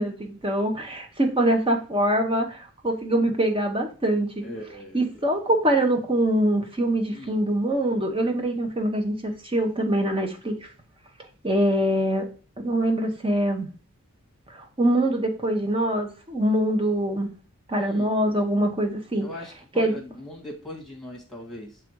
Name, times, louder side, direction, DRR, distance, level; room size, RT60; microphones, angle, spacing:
voice 1, 0.0-4.5 4.9-10.7 11.4-12.3 12.6-13.7 14.5-17.3 17.7-19.3 19.8-20.0, right 1 dB, 25° right, 1.0 m, -24 dB
voice 2, 4.4-5.2 7.1-7.4 17.8-18.1 19.2-21.8, left 1 dB, ahead, 1.8 m, -40 dB
6.7 x 3.7 x 4.6 m
head